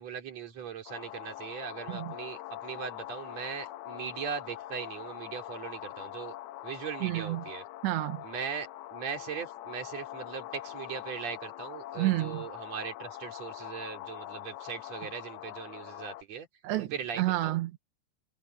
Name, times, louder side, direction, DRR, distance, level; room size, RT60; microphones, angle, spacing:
voice 1, 0.0-6.4 6.6-7.6 8.2-16.5 16.8-17.6, right 7 dB, 40° right, 4.1 m, -39 dB
sound 1, 0.9-16.2, left 14 dB, 75° left, 2.6 m, -43 dB
voice 2, 7.0-7.4 7.8-8.2 12.0-12.4 16.6-17.8, right 17 dB, 85° right, 3.2 m, -30 dB
omnidirectional pair, 5.0 m